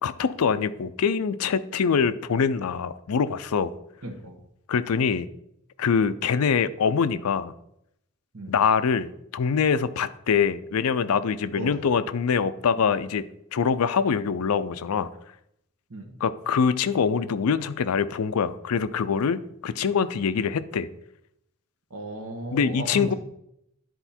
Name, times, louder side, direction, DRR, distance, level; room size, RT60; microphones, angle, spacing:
voice 1, 0.0-3.7 4.7-5.3 5.8-7.5 8.5-13.2 13.5-15.1 16.2-20.9 22.5-23.1, left 6 dB, 75° left, 15 dB, 0.5 m, -24 dB
voice 2, 4.0-4.4 8.3-8.5 11.5-11.8 15.9-16.2 21.9-23.2, right 1 dB, 75° right, 4 dB, 1.4 m, -35 dB
10.0 x 4.4 x 4.3 m, 0.77 s
head